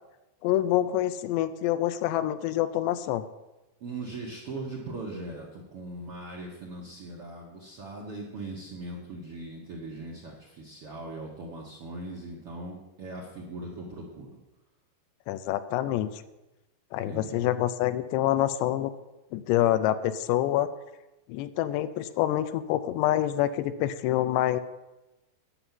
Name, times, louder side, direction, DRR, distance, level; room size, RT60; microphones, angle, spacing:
voice 1, 0.4-3.2 15.3-16.1 16.9-18.9 19.3-20.7 21.3-24.6, left 13 dB, 80° left, 12 dB, 2.8 m, -26 dB
voice 2, 3.8-14.4 17.0-17.5, right 2 dB, 65° right, -3 dB, 1.4 m, -40 dB
10.0 x 7.0 x 9.1 m, 1.0 s
omnidirectional pair, 5.0 m